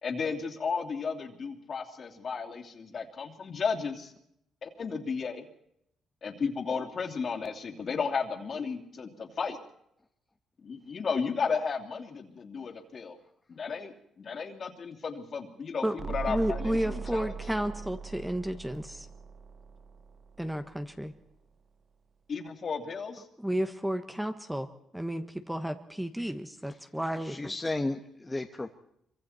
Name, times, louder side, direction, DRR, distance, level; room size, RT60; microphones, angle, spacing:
voice 1, 0.0-4.1 4.6-5.5 6.2-9.6 10.6-13.2 13.5-17.3 22.3-23.3, left 5 dB, 45° left, 3 dB, 3.0 m, -34 dB
voice 2, 15.8-19.1 20.4-21.1 23.4-24.7 24.9-27.4, right 1 dB, 5° right, 8 dB, 1.4 m, -32 dB
sound 1, 16.0-20.6, right 5 dB, 45° right, 0.7 m, -40 dB
voice 3, 27.2-28.7, left 2 dB, 15° left, 4 dB, 1.3 m, -34 dB
26.0 x 24.0 x 4.4 m, 0.76 s
cardioid pair, 90°, 0 cm